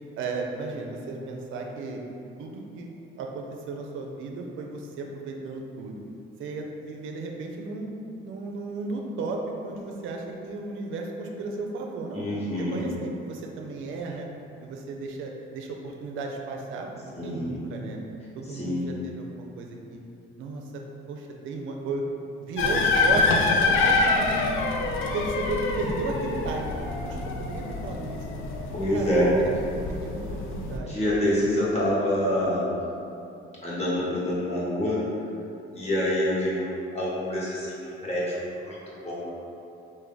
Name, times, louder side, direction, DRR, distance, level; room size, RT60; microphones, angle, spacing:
voice 1, 0.1-2.0 2.4-6.0 6.4-7.9 8.2-12.3 12.6-14.3 14.6-16.9 17.2-18.0 18.4-20.0 20.4-20.8 21.1-22.0 22.4-24.4 25.1-28.2 28.9-29.5 29.9-30.9, right 3 dB, 80° right, 1 dB, 0.5 m, -34 dB
voice 2, 12.1-12.9 17.1-17.6 18.5-18.8 28.7-29.3 30.9-32.7 33.6-35.0 35.7-39.3, left 1 dB, 30° left, -8 dB, 1.3 m, -27 dB
sound 1, 22.6-30.8, left 3 dB, 85° left, 0.4 m, -26 dB
3.3 x 2.6 x 3.8 m, 2.7 s
cardioid pair, 90°, 20 cm